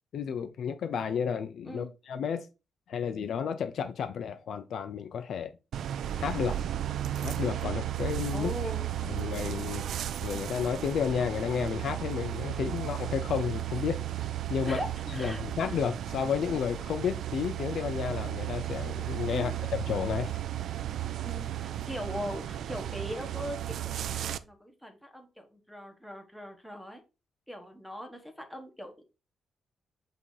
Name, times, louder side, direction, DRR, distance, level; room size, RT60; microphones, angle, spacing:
voice 1, 0.1-2.5 2.9-5.5 6.2-6.6 7.2-8.5 9.0-9.9 10.2-14.1 14.5-14.8 15.2-20.4, left 7 dB, 60° left, 0.5 m, -32 dB
sound 1, 5.7-24.4, right 12 dB, 70° right, 0.4 m, -34 dB
voice 2, 8.3-8.9 14.6-14.9 15.1-15.4 19.3-19.6 21.2-27.0 27.5-29.0, equal, ahead, 1.1 m, -40 dB
7.7 x 2.8 x 4.7 m
wide cardioid pair, 175°, 0 cm